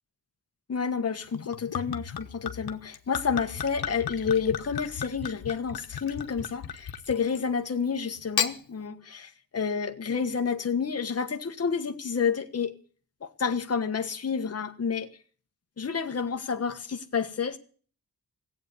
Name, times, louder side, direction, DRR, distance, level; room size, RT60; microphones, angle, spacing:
voice 1, 0.7-12.8 13.2-15.1 15.8-17.6, left 6 dB, 40° left, 1.5 m, -29 dB
Gurgling / Chink clink / Liquid, 1.3-7.5 8.2-8.6, left 8 dB, 90° left, 1.3 m, -34 dB
17.5 x 8.4 x 9.5 m
wide cardioid pair, 115°, 36 cm